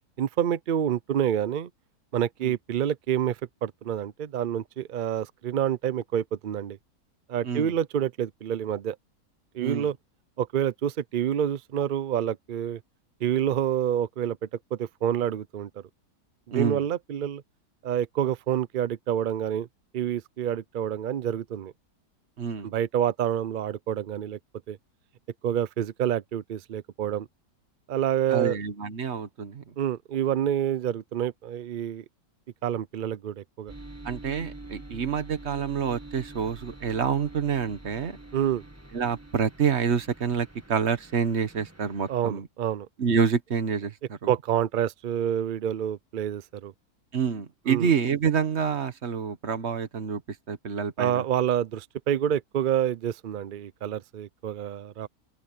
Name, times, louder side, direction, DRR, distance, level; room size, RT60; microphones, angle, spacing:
voice 1, 0.2-1.7 2.1-6.8 7.3-9.0 9.5-9.9 10.4-12.8 13.2-15.7 16.5-17.4 17.8-19.7 19.9-21.7 22.6-24.4 24.7-24.8 25.4-27.3 27.9-28.6 29.8-32.0 32.6-33.7 38.3-38.6 42.1-42.9 44.3-46.7 47.7-47.9 51.0-55.1, right 10 dB, 75° right, 0.4 m, -28 dB
voice 2, 9.6-9.9 16.5-16.9 22.4-22.7 28.3-29.7 34.0-38.2 38.9-42.5 43.0-44.3 47.1-51.2, right 6 dB, 45° right, 1.4 m, -27 dB
sound 1, 33.7-42.2, right 2 dB, 10° right, 1.7 m, -46 dB
open air
omnidirectional pair, 1.6 m